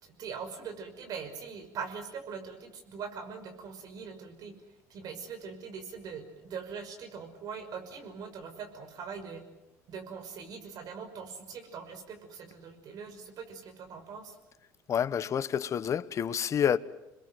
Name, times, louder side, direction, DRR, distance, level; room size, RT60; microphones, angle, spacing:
voice 1, 0.0-4.5 4.9-9.4 9.9-14.4, right 6 dB, 50° right, 5.8 m, -42 dB
voice 2, 14.9-16.8, left 8 dB, 40° left, 1.2 m, -28 dB
28.0 x 21.5 x 7.8 m
supercardioid pair, 90°, 8 cm